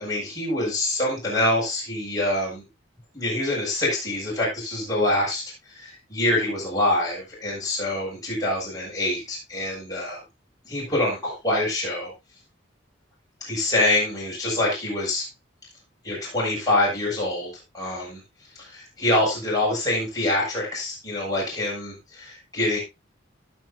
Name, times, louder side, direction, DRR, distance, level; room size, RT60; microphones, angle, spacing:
voice 1, 0.0-2.6 3.1-5.4 5.7-10.2 10.6-12.1 13.4-15.3 16.0-18.2 18.6-22.8, left 1 dB, 20° left, -5 dB, 6.6 m, -25 dB
18.5 x 6.4 x 2.6 m, 0.23 s
head